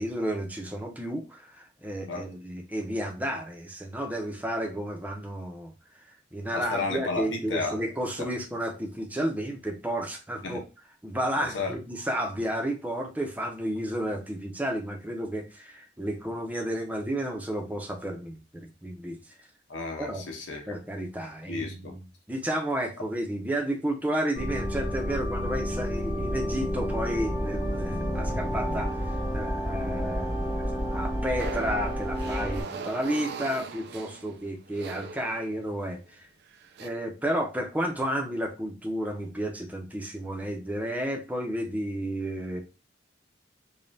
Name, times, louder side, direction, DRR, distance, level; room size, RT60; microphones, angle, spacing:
voice 1, 0.0-6.0 6.3-10.6 11.0-19.2 20.0-20.2 20.7-36.3 36.8-42.6, right 1 dB, 10° right, 0.7 m, -32 dB
voice 2, 6.5-7.8 8.2-8.3 10.4-10.6 11.4-11.8 19.7-20.8 21.5-22.0, left 3 dB, 85° left, 0.9 m, -33 dB
sound 1, 24.4-32.6, equal, 35° left, 2.1 m, -30 dB
sound 2, 31.4-35.8 36.5-36.9, right 4 dB, 60° right, 0.4 m, -40 dB
5.2 x 2.4 x 2.7 m
head